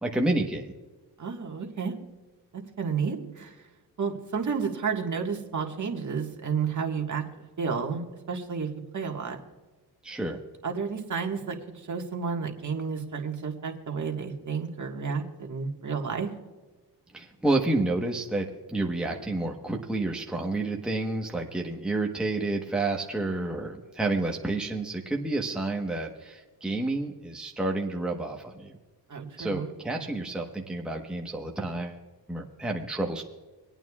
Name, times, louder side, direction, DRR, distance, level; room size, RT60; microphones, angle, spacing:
voice 1, 0.0-0.7 10.0-10.4 17.1-28.8 29.4-32.0 32.3-33.2, right 2 dB, ahead, 1 dB, 1.2 m, -30 dB
voice 2, 1.2-1.9 2.5-3.7 4.0-7.2 7.6-8.7 8.9-9.4 10.6-16.3 29.1-29.7, right 5 dB, 40° right, 2 dB, 1.8 m, -31 dB
25.5 x 9.0 x 2.4 m, 1.3 s
cardioid pair, 80°, 43 cm